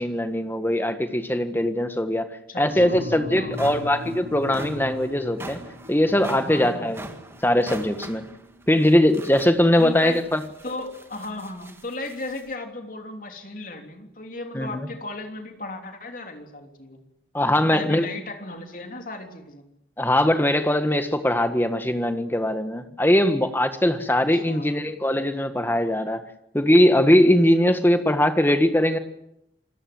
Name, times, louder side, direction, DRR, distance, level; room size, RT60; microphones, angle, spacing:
voice 1, 0.0-2.3 2.6-5.6 5.9-7.0 7.4-8.3 8.7-10.4 14.5-14.9 17.3-18.1 20.0-26.2 26.5-29.0, left 1 dB, 10° left, 8 dB, 1.6 m, -21 dB
voice 2, 2.5-3.8 6.4-6.9 9.8-10.3 10.6-17.0 17.5-19.7 24.3-24.8, left 2 dB, 45° left, 4 dB, 3.3 m, -36 dB
sound 1, 2.7-9.2, left 1 dB, 55° right, 7.9 m, -38 dB
sound 2, 2.8-2.9 3.3-12.5, right 1 dB, 15° right, 1.8 m, -43 dB
27.5 x 19.5 x 7.9 m, 0.82 s
head